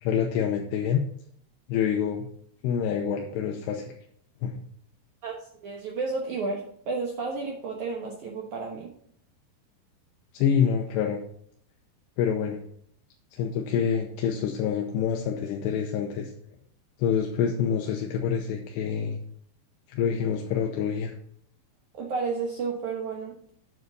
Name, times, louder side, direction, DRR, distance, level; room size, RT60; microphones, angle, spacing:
voice 1, 0.0-1.0 1.7-2.3 2.6-3.9 4.4-4.6 10.3-11.2 12.2-12.6 13.3-16.3 17.0-19.2 19.9-21.1, left 8 dB, 75° left, 2 dB, 2.7 m, -26 dB
voice 2, 5.2-8.9 21.9-23.5, right 4 dB, 80° right, -1 dB, 1.7 m, -32 dB
9.3 x 7.8 x 4.0 m, 0.65 s
omnidirectional pair, 5.4 m